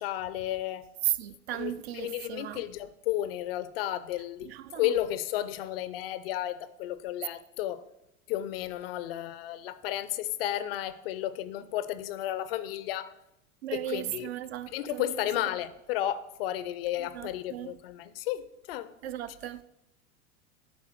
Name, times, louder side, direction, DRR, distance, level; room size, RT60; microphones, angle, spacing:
voice 1, 0.0-0.8 1.5-4.5 4.7-7.8 8.3-13.1 13.7-14.3 14.7-18.9, left 13 dB, 45° left, 0.5 m, -33 dB
voice 2, 1.0-2.7 4.4-4.9 13.6-15.2 17.0-17.7 19.0-19.6, right 13 dB, 50° right, 0.5 m, -35 dB
10.5 x 3.6 x 6.4 m
figure-of-eight pair, 85°, 43 cm